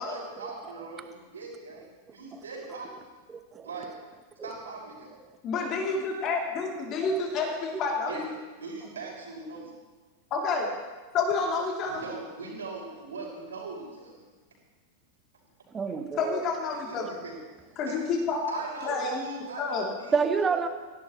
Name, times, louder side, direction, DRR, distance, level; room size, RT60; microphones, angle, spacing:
voice 1, 0.0-1.9 2.1-2.9 3.6-3.9 4.4-5.1 8.1-8.2 8.6-9.7 11.8-14.1 16.9-17.3 17.9-18.0 18.5-20.1 20.4-20.5, right 3 dB, 70° right, -3 dB, 6.2 m, -40 dB
voice 2, 3.3-3.7 4.4-4.5 7.1-7.4 15.7-16.4 20.1-20.7, right 5 dB, 20° right, 9 dB, 1.2 m, -29 dB
voice 3, 5.4-8.4 10.3-10.7 11.1-12.0 16.2-17.1 17.7-18.4 18.8-19.2 19.6-19.9, left 4 dB, 35° left, -1 dB, 3.5 m, -29 dB
24.0 x 17.0 x 3.3 m, 1.3 s
figure-of-eight pair, 90°, 0 cm